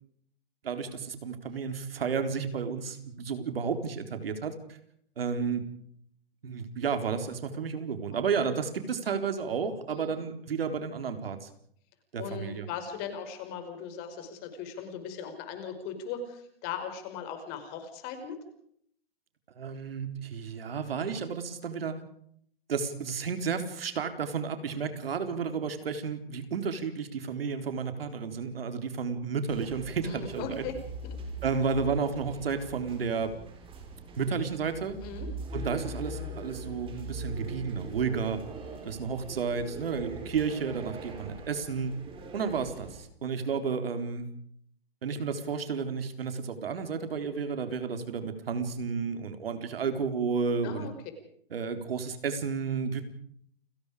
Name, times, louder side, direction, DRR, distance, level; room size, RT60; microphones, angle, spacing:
voice 1, 0.6-4.8 5.2-5.6 6.4-11.5 12.1-12.7 19.6-22.0 22.7-30.6 31.4-33.3 34.2-35.0 35.5-38.4 38.8-41.9 42.3-44.3 45.0-50.9 51.5-53.0, right 5 dB, 70° right, 8 dB, 4.0 m, -32 dB
voice 2, 12.2-18.4 30.0-30.7 31.0-31.1 35.0-35.3 38.8-38.9 50.6-50.9, left 7 dB, 35° left, 7 dB, 5.2 m, -39 dB
sound 1, 29.5-43.0, right 2 dB, 15° right, 4.7 m, -41 dB
29.5 x 18.5 x 5.0 m, 0.66 s
hypercardioid pair, 135°, 30 cm